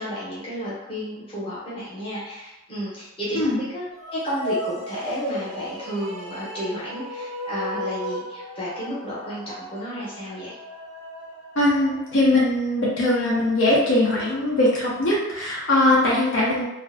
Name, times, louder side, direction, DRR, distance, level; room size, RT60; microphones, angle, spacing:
voice 1, 0.0-3.8 4.1-10.6, equal, 25° left, -8 dB, 0.8 m, -32 dB
sound 1, 3.9-12.4, equal, 5° right, 0.6 m, -35 dB
voice 2, 11.6-16.7, left 1 dB, 65° left, -6 dB, 0.6 m, -21 dB
2.4 x 2.1 x 2.5 m, 0.97 s
head